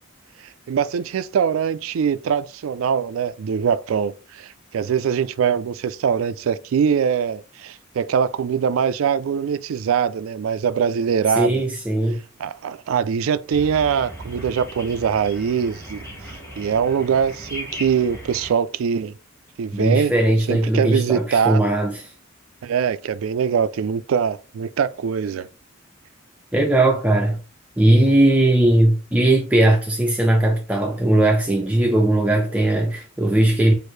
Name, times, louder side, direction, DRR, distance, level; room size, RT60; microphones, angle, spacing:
voice 1, 0.4-11.6 12.4-16.0 16.6-19.1 19.6-20.1 20.5-21.6 22.6-25.5, right 7 dB, 75° right, 0.3 m, -22 dB
voice 2, 11.4-12.2 19.7-22.1 26.5-27.4 27.8-33.7, right 1 dB, 5° right, 0.4 m, -18 dB
sound 1, 13.5-18.5, equal, 15° left, 1.4 m, -37 dB
6.3 x 2.5 x 3.2 m
head